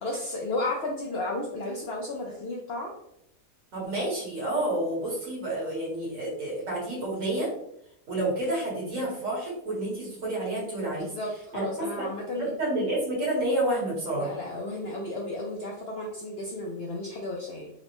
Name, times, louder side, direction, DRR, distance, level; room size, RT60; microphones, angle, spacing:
voice 1, 0.0-2.9 11.0-12.5 14.2-17.7, left 2 dB, 70° left, -1 dB, 0.6 m, -33 dB
voice 2, 3.7-7.5 8.1-11.1 11.5-11.6 12.4-14.3, right 1 dB, 65° right, -5 dB, 1.7 m, -29 dB
3.8 x 2.1 x 2.9 m, 0.77 s
omnidirectional pair, 1.5 m